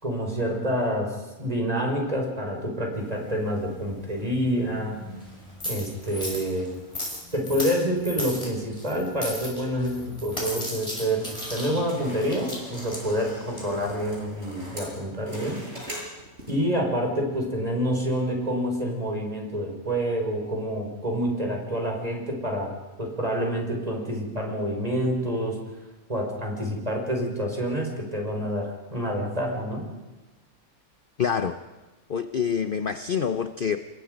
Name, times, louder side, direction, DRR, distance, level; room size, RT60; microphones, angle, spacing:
voice 1, 0.0-5.0 5.6-6.8 7.3-15.6 16.5-25.6 26.1-29.9, equal, 25° right, 1 dB, 5.2 m, -27 dB
sound 1, 2.9-15.0, left 1 dB, 25° left, 6.4 m, -38 dB
sound 2, 11.3-16.7, equal, 50° right, 8.1 m, -42 dB
voice 2, 31.2-31.6 32.1-33.8, left 7 dB, 45° left, 9 dB, 0.8 m, -26 dB
28.5 x 21.0 x 5.3 m, 1.2 s
omnidirectional pair, 1.5 m